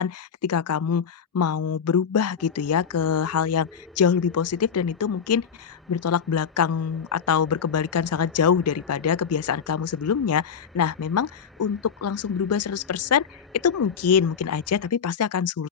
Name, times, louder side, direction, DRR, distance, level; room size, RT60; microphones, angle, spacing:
voice 1, 0.0-3.7 4.0-13.3 13.6-15.7, left 7 dB, 85° left, 0.4 m, -24 dB
sound 1, 2.4-14.9, equal, ahead, 3.7 m, -49 dB
open air
head